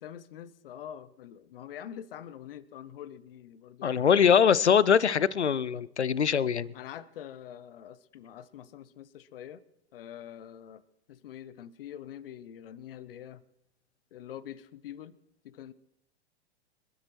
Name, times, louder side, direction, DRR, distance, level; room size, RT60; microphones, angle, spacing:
voice 1, 0.0-4.1 6.7-9.6 9.9-10.8 11.1-13.4 14.1-15.2 15.4-15.7, left 10 dB, 55° left, 16 dB, 0.9 m, -45 dB
voice 2, 3.8-6.7, left 7 dB, 85° left, 21 dB, 0.6 m, -23 dB
25.5 x 13.0 x 3.1 m, 0.81 s
figure-of-eight pair, 100°, 33 cm